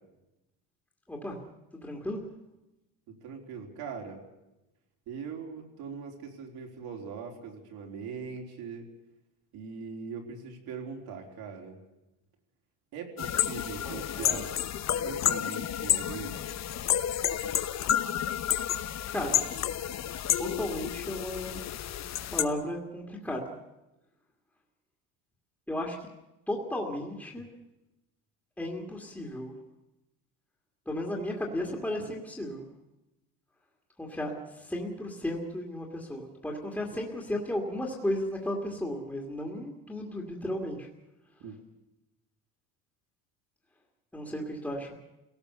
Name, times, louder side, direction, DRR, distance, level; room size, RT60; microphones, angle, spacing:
voice 1, 1.8-2.2 13.8-14.4 19.1-19.4 20.4-21.6 22.3-23.6 25.7-26.0 26.5-27.5 28.6-29.5 30.9-32.6 34.0-40.9 44.1-45.0, left 1 dB, 5° left, 0 dB, 2.3 m, -34 dB
voice 2, 3.1-4.2 5.1-8.9 9.5-11.8 12.9-14.5 15.0-16.4 41.4-41.6, right 5 dB, 65° right, 1 dB, 4.1 m, -41 dB
sound 1, 13.2-22.4, left 11 dB, 40° left, 1.0 m, -30 dB
28.5 x 17.5 x 6.9 m, 0.97 s
cardioid pair, 150°, 40 cm